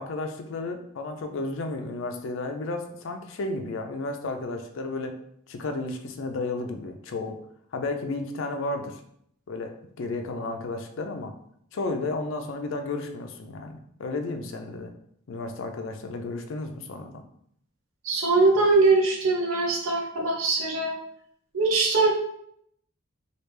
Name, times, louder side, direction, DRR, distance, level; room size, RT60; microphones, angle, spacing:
voice 1, 0.0-5.1 5.5-7.3 7.7-9.0 9.5-9.7 10.0-11.3 11.7-14.9 15.3-17.2, left 2 dB, 65° left, 5 dB, 0.4 m, -32 dB
voice 2, 18.0-20.9 21.5-22.1, right 3 dB, 70° right, -1 dB, 0.6 m, -22 dB
3.2 x 2.4 x 3.3 m, 0.71 s
head